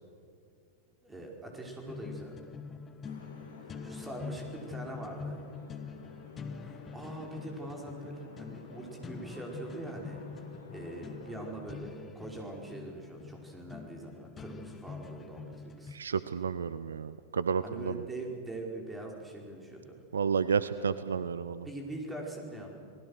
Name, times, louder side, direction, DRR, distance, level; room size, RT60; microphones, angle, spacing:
voice 1, 1.0-2.6 3.6-5.4 6.6-10.2 10.7-16.0 17.6-20.0 21.6-22.8, right 2 dB, 10° right, 0 dB, 5.0 m, -43 dB
sound 1, 1.9-15.9, left 5 dB, 20° left, 1.3 m, -45 dB
sound 2, 3.0-11.8, left 3 dB, 75° left, 2.7 m, -51 dB
voice 2, 15.9-18.0 20.1-21.7, right 6 dB, 70° right, 15 dB, 0.6 m, -31 dB
29.5 x 19.5 x 6.6 m, 2.4 s
figure-of-eight pair, 90°, 0 cm